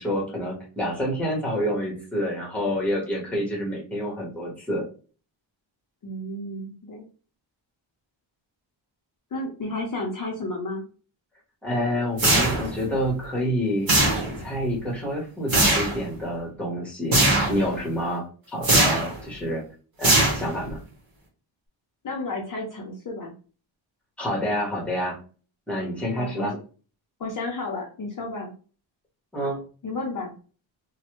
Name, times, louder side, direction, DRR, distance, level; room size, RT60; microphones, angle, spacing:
voice 1, 0.0-4.8 11.6-14.0 14.4-18.2 18.5-19.6 20.0-20.8 24.2-25.2 25.7-26.5 29.3-29.6, equal, 5° left, -3 dB, 1.0 m, -28 dB
voice 2, 6.0-7.0 9.3-10.8 22.0-23.3 26.1-26.5 27.2-28.5 29.8-30.3, left 2 dB, 40° left, -2 dB, 0.6 m, -32 dB
sound 1, 12.2-12.9 13.9-14.5 15.5-16.0 17.1-17.6 18.6-19.2 20.0-20.7, right 1 dB, 45° right, 1.3 m, -20 dB
3.1 x 2.1 x 3.0 m, 0.37 s
wide cardioid pair, 170°, 48 cm